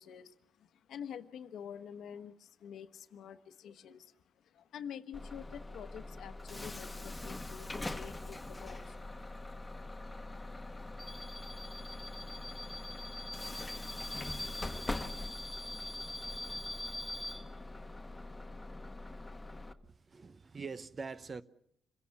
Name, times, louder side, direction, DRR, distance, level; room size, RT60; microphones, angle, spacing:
voice 1, 0.0-9.0, left 8 dB, 75° left, 1.2 m, -48 dB
Bus / Alarm, 5.1-19.7, left 2 dB, 15° left, 1.2 m, -42 dB
voice 2, 19.8-21.4, right 4 dB, 35° right, 0.9 m, -44 dB
27.0 x 16.5 x 7.2 m
cardioid pair, 105°, 0 cm